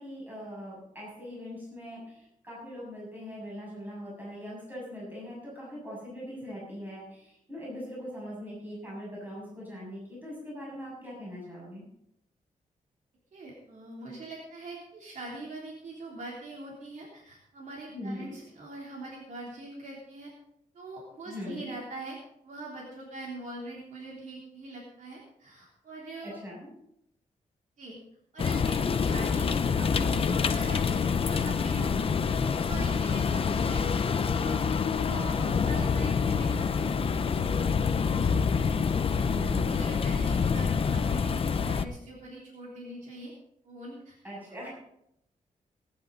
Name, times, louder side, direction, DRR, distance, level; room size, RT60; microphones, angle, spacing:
voice 1, 0.0-11.9 17.9-18.4 21.2-21.7 26.2-26.7 39.3-39.9 44.2-44.7, equal, 15° right, -6 dB, 7.4 m, -41 dB
voice 2, 13.3-20.3 20.7-22.2 22.4-26.3 27.8-28.0 28.3-32.0 32.4-34.6 34.9-43.3 43.6-44.2, right 2 dB, 65° right, -4 dB, 3.4 m, -43 dB
sound 1, 28.4-41.8, left 6 dB, 45° left, 0.7 m, -27 dB
19.5 x 10.5 x 4.1 m, 0.77 s
wide cardioid pair, 150°, 14 cm